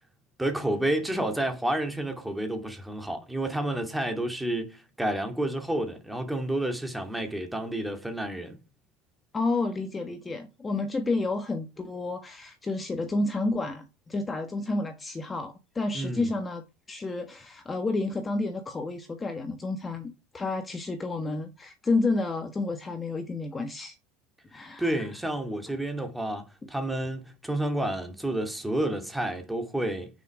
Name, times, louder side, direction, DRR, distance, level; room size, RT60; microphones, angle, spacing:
voice 1, 0.4-8.6 15.9-16.3 24.8-30.1, right 1 dB, 5° right, 2.5 m, -30 dB
voice 2, 9.3-16.6 16.9-23.9 24.5-25.1 26.6-26.7, left 3 dB, 20° left, 1.4 m, -30 dB
9.1 x 6.5 x 4.9 m
supercardioid pair, 105°, 0 cm